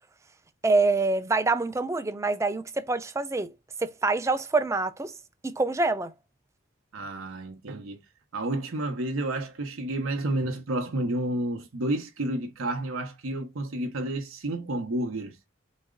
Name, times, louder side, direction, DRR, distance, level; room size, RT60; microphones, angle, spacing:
voice 1, 0.6-3.5 3.8-5.1 5.4-6.1, right 3 dB, 15° right, 0.4 m, -26 dB
voice 2, 6.9-8.0 8.3-15.4, right 1 dB, 85° right, 0.8 m, -30 dB
4.1 x 2.0 x 3.6 m
head